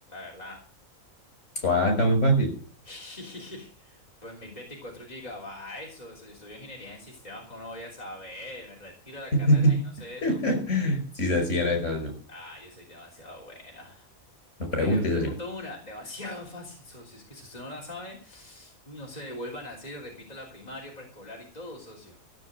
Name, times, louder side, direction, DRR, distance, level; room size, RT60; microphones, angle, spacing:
voice 1, 0.1-0.7 2.8-10.4 12.3-14.1 14.8-22.2, left 1 dB, 30° left, -3 dB, 3.5 m, -42 dB
voice 2, 1.6-2.5 9.5-9.8 10.2-12.1 14.7-15.3, equal, 55° left, 4 dB, 5.8 m, -23 dB
15.0 x 7.5 x 7.7 m, 0.43 s
omnidirectional pair, 1.4 m